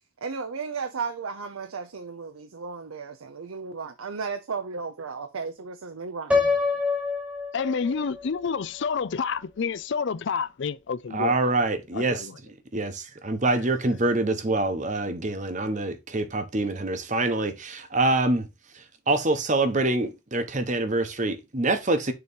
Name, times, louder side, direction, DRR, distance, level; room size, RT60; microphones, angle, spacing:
voice 1, 0.2-6.4, right 5 dB, 80° right, 0.6 m, -34 dB
Piano, 6.3-8.3, left 4 dB, 5° right, 0.9 m, -25 dB
voice 2, 7.5-11.5 11.9-12.4, left 5 dB, 55° left, 0.4 m, -29 dB
voice 3, 11.1-12.3 12.7-18.5 18.7-22.1, right 2 dB, 35° right, 0.9 m, -25 dB
6.7 x 3.1 x 5.3 m
head